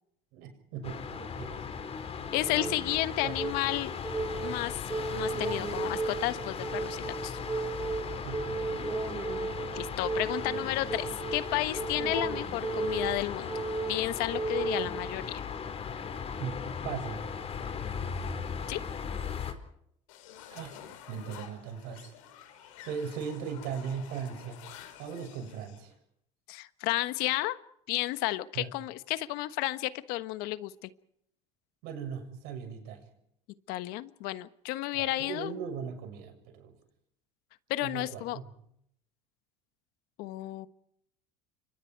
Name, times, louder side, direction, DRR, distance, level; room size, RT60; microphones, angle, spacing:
voice 1, 0.3-1.6 2.4-2.9 3.2-3.4 8.2-8.8 16.4-17.2 20.5-20.8 21.1-22.1 22.6-24.6 25.0-25.9 28.6-28.7 31.8-33.1 34.9-36.8 37.8-38.5, right 7 dB, 70° right, 6 dB, 7.0 m, -39 dB
sound 1, 0.8-19.5, left 6 dB, 40° left, 4.6 m, -38 dB
voice 2, 2.3-3.9 4.4-4.8 5.1-7.4 9.7-13.5 13.9-15.3 18.7-18.8 26.5-27.6 27.9-30.9 33.7-35.5 37.7-38.4 40.2-40.7, left 17 dB, 70° left, 12 dB, 1.4 m, -32 dB
sound 2, 2.3-15.3, right 4 dB, 20° right, 3.0 m, -35 dB
sound 3, 20.1-25.8, left 10 dB, 85° left, 5.2 m, -50 dB
30.0 x 25.5 x 4.7 m, 0.74 s
supercardioid pair, 100°, 16 cm